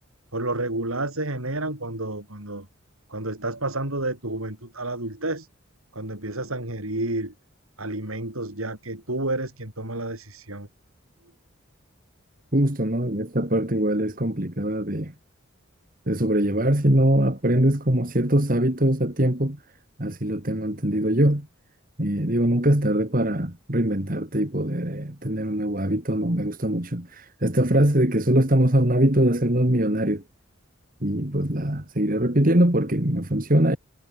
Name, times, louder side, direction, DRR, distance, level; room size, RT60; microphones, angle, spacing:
voice 1, 0.3-2.7 3.1-5.5 5.9-7.3 7.8-10.7, right 2 dB, 85° right, 6.4 m, -30 dB
voice 2, 12.5-15.1 16.1-19.6 20.0-21.5 22.0-30.2 31.0-33.8, right 1 dB, 40° right, 2.7 m, -22 dB
head